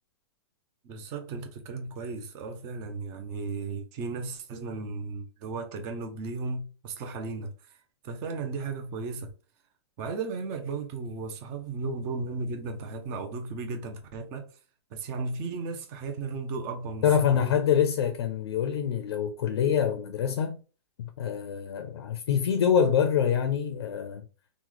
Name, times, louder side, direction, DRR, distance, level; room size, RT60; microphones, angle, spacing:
voice 1, 0.8-7.5 8.0-9.3 10.0-14.5 14.9-17.1 17.3-17.5, right 4 dB, 20° right, 0.3 m, -35 dB
voice 2, 17.0-20.6 21.0-24.3, left 8 dB, 65° left, 0.4 m, -25 dB
3.0 x 2.1 x 3.7 m
hypercardioid pair, 170°, 14 cm